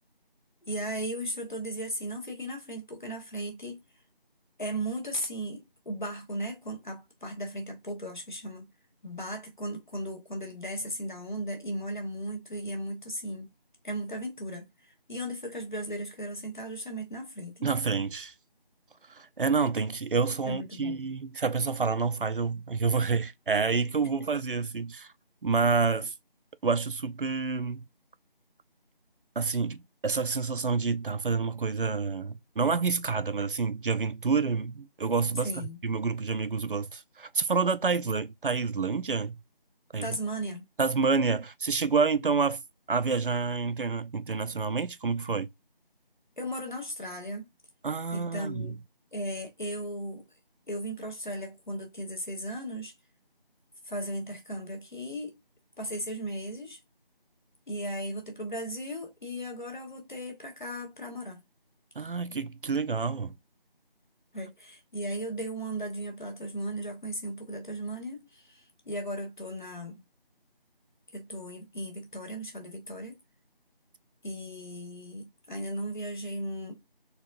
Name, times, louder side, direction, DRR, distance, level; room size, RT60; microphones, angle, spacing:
voice 1, 0.6-3.8 4.6-8.7 9.0-13.5 13.8-17.7 20.5-21.0 35.4-35.8 40.0-40.6 46.4-47.5 48.1-48.8 49.1-50.3 50.7-52.9 53.8-55.3 55.8-56.8 57.7-61.4 64.3-70.0 71.1-73.2 74.2-76.8, right 1 dB, 55° left, 1.1 m, -36 dB
voice 2, 17.6-18.3 19.1-25.1 25.4-26.1 26.6-27.8 29.4-35.5 35.8-39.4 39.9-40.2 40.8-42.6 42.9-45.5 47.8-48.7 62.0-63.3, right 4 dB, 65° right, 0.5 m, -28 dB
4.0 x 2.3 x 2.5 m
figure-of-eight pair, 175°, 29 cm